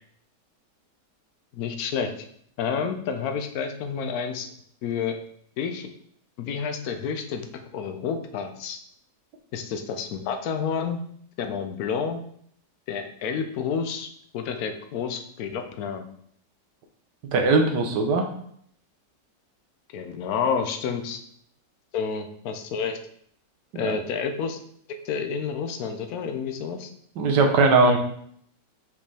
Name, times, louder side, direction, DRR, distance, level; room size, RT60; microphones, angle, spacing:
voice 1, 1.5-2.1 2.6-4.5 4.8-5.2 5.6-5.9 6.4-7.5 7.7-8.8 9.5-11.0 11.4-12.2 12.9-16.0 19.9-21.2 21.9-23.0 23.7-24.6 25.0-26.9, left 6 dB, 65° left, 7 dB, 1.1 m, -29 dB
voice 2, 17.3-18.3 23.7-23.9 27.2-28.0, right 3 dB, 80° right, 4 dB, 1.5 m, -20 dB
5.3 x 5.3 x 3.3 m, 0.65 s
omnidirectional pair, 1.8 m